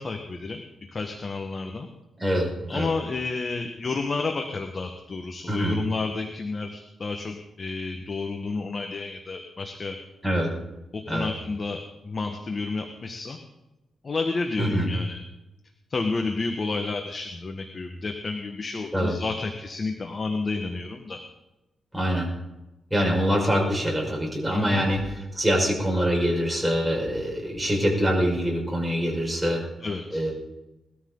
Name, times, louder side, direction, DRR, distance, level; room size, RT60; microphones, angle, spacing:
voice 1, 0.0-1.9 2.7-10.0 10.9-13.4 14.0-15.2 15.9-21.2 24.5-24.9 29.8-30.2, left 3 dB, 40° left, 4 dB, 1.4 m, -31 dB
voice 2, 2.2-2.9 5.5-5.8 10.2-10.5 11.1-11.3 14.6-14.9 18.9-19.2 21.9-22.3 22.9-29.6 30.1-30.3, equal, 5° right, -1 dB, 5.4 m, -24 dB
20.0 x 13.5 x 3.9 m, 1.0 s
cardioid pair, 105°, 0 cm